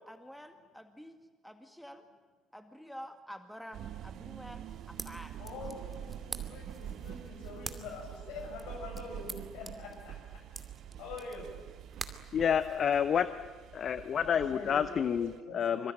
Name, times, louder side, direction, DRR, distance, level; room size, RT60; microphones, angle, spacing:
voice 1, 0.1-2.0 2.5-5.4, equal, ahead, 7 dB, 2.0 m, -49 dB
sound 1, 3.7-15.4, right 10 dB, 50° right, 1.3 m, -46 dB
sound 2, 4.6-13.2, right 3 dB, 20° right, 2.5 m, -48 dB
voice 2, 5.4-10.4 10.9-11.5 14.2-15.2 15.5-15.6, left 4 dB, 60° left, 2 dB, 7.7 m, -45 dB
voice 3, 12.3-13.3 13.7-15.9, left 8 dB, 45° left, 13 dB, 1.0 m, -29 dB
26.0 x 25.0 x 9.1 m, 1.4 s
figure-of-eight pair, 55°, 0 cm